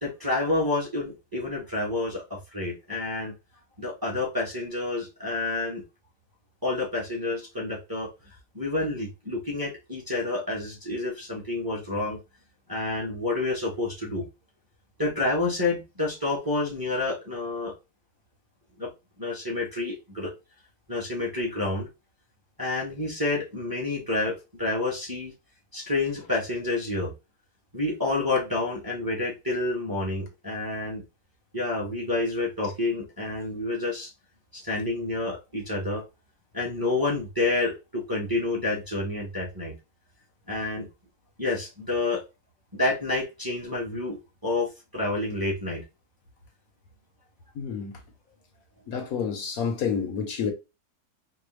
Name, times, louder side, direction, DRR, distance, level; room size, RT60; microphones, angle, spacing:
voice 1, 0.0-3.3 3.8-5.8 6.6-8.1 8.5-12.2 12.7-14.2 15.0-17.7 18.8-18.9 19.2-20.3 20.9-21.9 22.6-25.3 25.7-27.1 27.7-31.0 31.5-34.1 34.5-36.0 36.5-39.7 40.5-40.9 41.4-42.2 42.7-45.8, left 2 dB, 15° right, 1.0 m, -29 dB
voice 2, 47.6-48.0 48.9-50.5, left 6 dB, 65° left, 1.1 m, -29 dB
4.7 x 2.2 x 3.2 m
omnidirectional pair, 1.7 m